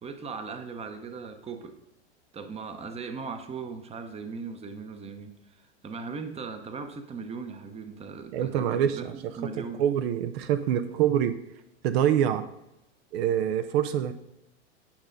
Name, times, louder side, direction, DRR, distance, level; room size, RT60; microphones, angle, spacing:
voice 1, 0.0-1.8 2.3-9.8, right 5 dB, 15° right, 7 dB, 0.8 m, -39 dB
voice 2, 8.3-11.4 11.8-12.4 13.1-14.1, right 10 dB, 60° right, 9 dB, 0.6 m, -26 dB
8.8 x 4.9 x 3.9 m, 0.91 s
hypercardioid pair, 100°, 35 cm